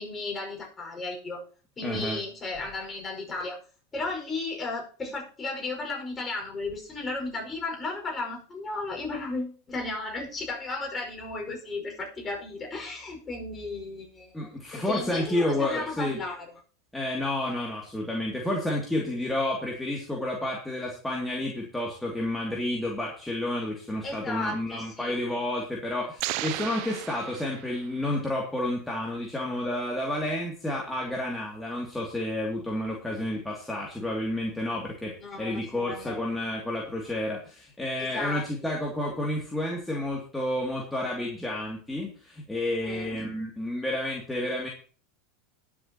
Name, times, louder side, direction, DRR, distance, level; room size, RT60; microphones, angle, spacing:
voice 1, 0.0-1.4 1.8-3.6 3.9-16.5 24.0-25.2 35.2-36.2 38.0-38.5 39.1-39.2 42.8-43.2, left 3 dB, 25° left, 0 dB, 5.5 m, -34 dB
voice 2, 1.8-2.2 14.3-16.2 16.9-44.7, left 1 dB, 5° left, -2 dB, 2.7 m, -30 dB
sound 1, 26.2-28.1, right 17 dB, 60° right, 0.6 m, -35 dB
20.5 x 7.3 x 3.0 m, 0.40 s
hypercardioid pair, 90°, 0 cm